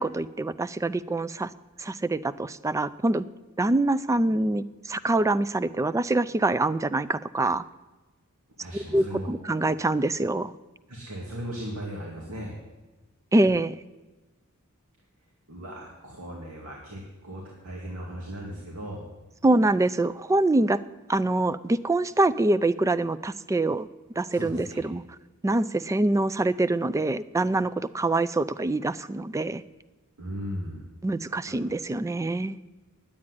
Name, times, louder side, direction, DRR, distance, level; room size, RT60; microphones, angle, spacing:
voice 1, 0.0-1.5 1.8-3.2 3.6-7.7 8.7-10.5 13.3-13.8 19.4-20.8 21.1-23.9 24.2-25.0 25.4-29.6 31.0-32.6, right 2 dB, 15° right, 16 dB, 0.3 m, -25 dB
voice 2, 8.6-9.3 10.9-12.5 15.5-19.0 24.3-24.8 30.2-30.8, equal, 85° right, -2 dB, 2.4 m, -37 dB
10.0 x 8.6 x 9.7 m, 1.2 s
head